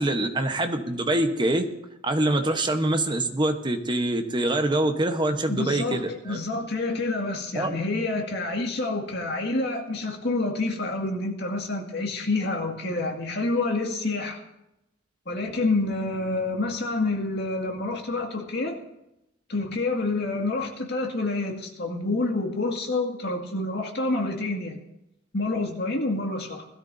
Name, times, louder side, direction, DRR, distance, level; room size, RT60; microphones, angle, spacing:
voice 1, 0.0-1.7 2.0-6.4 7.5-7.8, right 1 dB, 25° right, 6 dB, 1.1 m, -25 dB
voice 2, 5.5-14.4 15.3-18.8 19.5-24.8 25.3-26.7, left 2 dB, 60° left, 1 dB, 2.2 m, -28 dB
20.5 x 13.0 x 2.8 m, 0.87 s
head